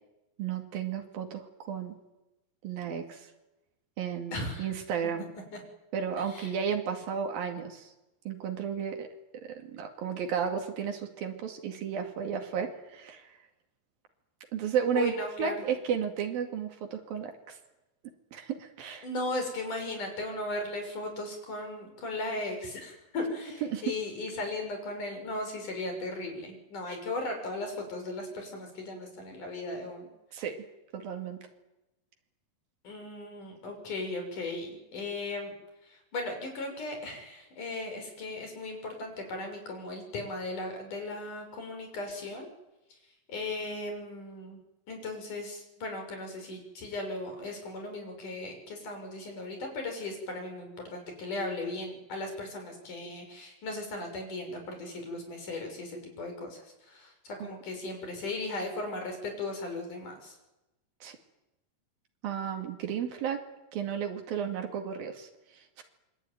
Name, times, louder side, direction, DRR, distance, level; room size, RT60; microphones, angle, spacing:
voice 1, 0.4-2.0 2.6-3.3 4.0-5.3 5.9-7.9 8.3-9.1 9.6-13.3 14.5-17.6 18.3-19.1 23.6-24.0 30.3-30.6 30.9-31.4 57.4-57.5 61.0-61.2 62.2-63.4 63.7-65.3 65.8-65.9, right 7 dB, 90° right, 3 dB, 4.2 m, -33 dB
voice 2, 4.3-4.7 5.5-5.6 6.2-6.5 14.9-15.6 19.0-30.1 32.8-35.5 35.8-42.5 43.3-44.6 44.9-60.3, left 2 dB, 60° left, 4 dB, 7.5 m, -37 dB
27.0 x 23.0 x 9.5 m, 0.99 s
omnidirectional pair, 4.0 m